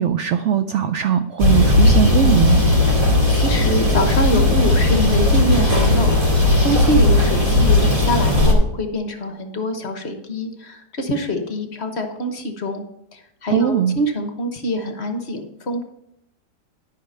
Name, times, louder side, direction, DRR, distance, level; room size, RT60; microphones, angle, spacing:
voice 1, 0.0-2.6 13.5-13.9, right 9 dB, 80° right, 9 dB, 0.6 m, -19 dB
sound 1, 1.4-8.5, left 2 dB, 20° right, 2.2 m, -16 dB
voice 2, 3.3-12.8 13.1-15.8, equal, 45° left, 6 dB, 1.1 m, -25 dB
12.0 x 5.9 x 5.5 m, 0.80 s
omnidirectional pair, 1.8 m